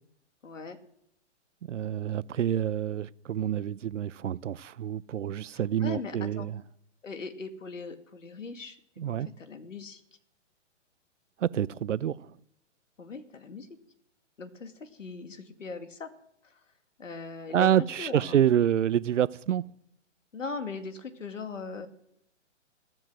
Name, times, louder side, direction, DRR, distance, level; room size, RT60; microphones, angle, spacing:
voice 1, 0.4-0.8 5.5-6.5 7.0-10.0 13.0-13.7 14.4-16.1 16.4-16.6 17.0-18.4 20.3-21.9, left 4 dB, 90° left, 2.4 m, -40 dB
voice 2, 1.6-6.6 9.0-9.3 11.4-12.3 17.5-19.6, right 10 dB, 75° right, 0.7 m, -27 dB
14.5 x 13.5 x 6.3 m
hypercardioid pair, 145°, 37 cm